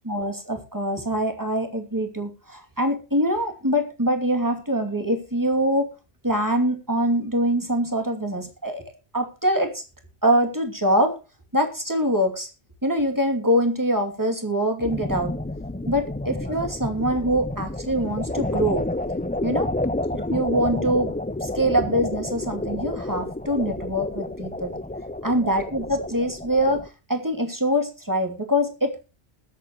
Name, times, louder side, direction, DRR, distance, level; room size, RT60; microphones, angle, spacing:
voice 1, 0.0-5.9 6.2-8.8 9.1-9.8 10.2-11.2 11.5-12.5 12.8-15.4 15.9-18.9 19.4-19.7 20.1-24.7 25.2-29.1, equal, 20° right, 4 dB, 2.7 m, -24 dB
sound 1, 14.8-26.9, left 1 dB, 10° left, 0.6 m, -30 dB
21.5 x 8.3 x 3.0 m, 0.31 s
omnidirectional pair, 1.1 m